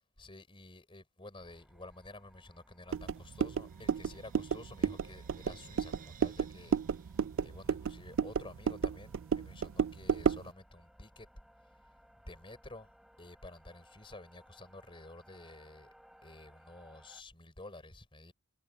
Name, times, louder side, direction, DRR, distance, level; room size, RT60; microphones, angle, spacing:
voice 1, 0.2-11.3 12.3-12.9 13.2-15.9 16.2-18.3, left 2 dB, 25° left, 4.3 m, -51 dB
sound 1, 1.4-17.2, equal, ahead, 3.2 m, -63 dB
Crash cymbal, 2.3-8.1, right 7 dB, 40° right, 7.5 m, -61 dB
sound 2, 2.9-10.5, right 6 dB, 60° right, 0.4 m, -33 dB
head